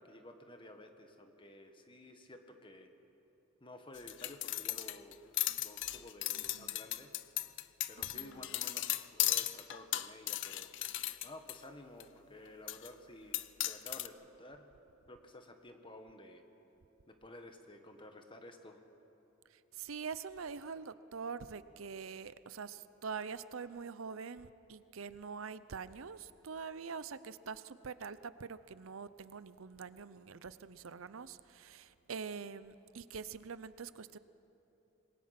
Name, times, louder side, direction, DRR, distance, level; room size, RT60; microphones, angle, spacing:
voice 1, 0.0-2.9 3.6-5.2 5.6-7.1 7.9-10.7 11.2-14.7 15.1-16.4 17.1-18.8, left 1 dB, 25° left, 6 dB, 1.6 m, -53 dB
sound 1, 4.0-11.6 12.0-12.1 12.7-12.9 13.3-14.1, left 15 dB, 60° left, 0.6 m, -36 dB
voice 2, 6.3-6.8 8.0-8.5 19.5-34.2, right 5 dB, 85° right, 15 dB, 0.6 m, -45 dB
26.5 x 21.5 x 5.9 m, 3.0 s
head